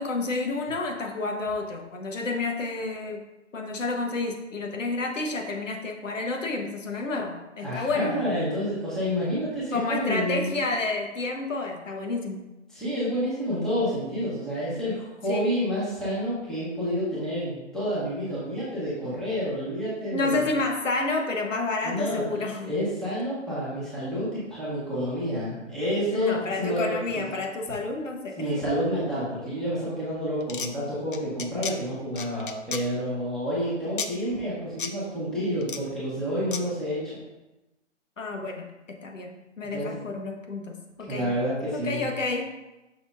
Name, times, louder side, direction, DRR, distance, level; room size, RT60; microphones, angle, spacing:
voice 1, 0.0-3.2 3.5-8.2 9.7-12.4 15.3-15.5 20.1-22.7 26.1-28.6 38.2-38.7 39.0-41.3 41.7-42.5, left 3 dB, 85° left, 3 dB, 1.2 m, -30 dB
voice 2, 7.6-10.6 12.7-20.5 21.8-26.3 26.6-26.8 28.4-37.2 39.7-39.9 41.1-42.1, equal, ahead, -10 dB, 1.1 m, -29 dB
sound 1, 30.4-30.7 31.1-31.7 32.1-32.8 34.0-34.1 34.8-34.9 35.6-35.8 36.5-36.6, left 6 dB, 45° left, 0.5 m, -32 dB
6.1 x 6.0 x 2.6 m, 1.0 s
hypercardioid pair, 155°, 37 cm